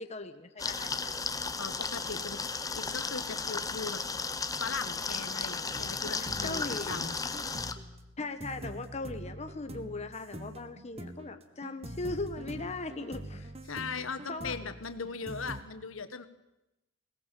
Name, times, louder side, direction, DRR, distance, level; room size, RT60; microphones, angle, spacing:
voice 1, 0.0-1.4 6.2-7.0 8.2-13.5 14.3-14.6, left 3 dB, 35° left, 7 dB, 1.2 m, -39 dB
sound 1, 0.6-7.7, left 4 dB, 20° left, 1.1 m, -35 dB
voice 2, 1.6-2.4 2.7-4.0 4.6-7.1 13.7-16.3, left 4 dB, 75° left, 10 dB, 1.4 m, -39 dB
sound 2, 5.7-15.6, right 1 dB, 30° right, 1.6 m, -44 dB
21.5 x 19.0 x 7.7 m, 0.92 s
head